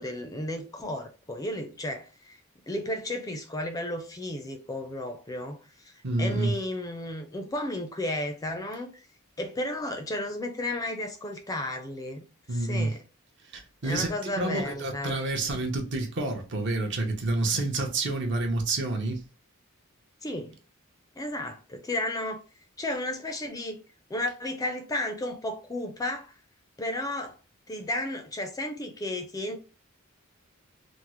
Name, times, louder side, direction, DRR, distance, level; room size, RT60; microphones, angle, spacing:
voice 1, 0.0-2.4 2.7-5.9 6.2-8.9 9.4-12.2 12.5-13.0 13.8-15.2 20.2-20.6 21.2-22.4 22.8-23.8 24.1-26.3 26.8-27.4 27.7-29.6, left 1 dB, 15° left, 0.4 m, -33 dB
voice 2, 6.0-6.5 12.5-12.9 13.5-14.1 14.4-19.2, right 2 dB, 55° right, 0.8 m, -28 dB
3.5 x 2.0 x 3.0 m
head